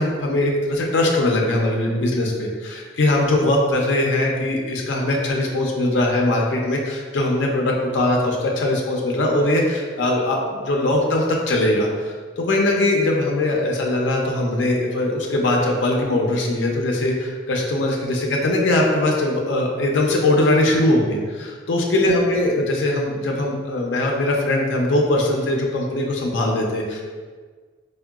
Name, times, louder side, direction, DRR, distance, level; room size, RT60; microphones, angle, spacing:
voice 1, 0.0-27.0, left 1 dB, 80° left, 0 dB, 0.4 m, -21 dB
3.6 x 2.1 x 2.2 m, 1.5 s
head